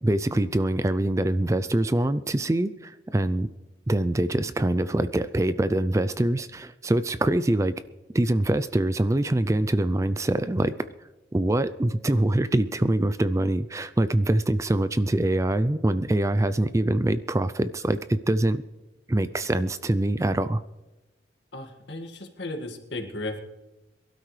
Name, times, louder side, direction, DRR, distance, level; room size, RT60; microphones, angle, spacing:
voice 1, 0.0-3.5 3.9-7.7 8.1-10.7 11.3-18.6 19.1-20.6, right 1 dB, 15° right, 13 dB, 0.4 m, -24 dB
voice 2, 21.5-23.4, left 2 dB, 70° left, 3 dB, 2.0 m, -35 dB
23.0 x 12.5 x 3.3 m, 1.1 s
head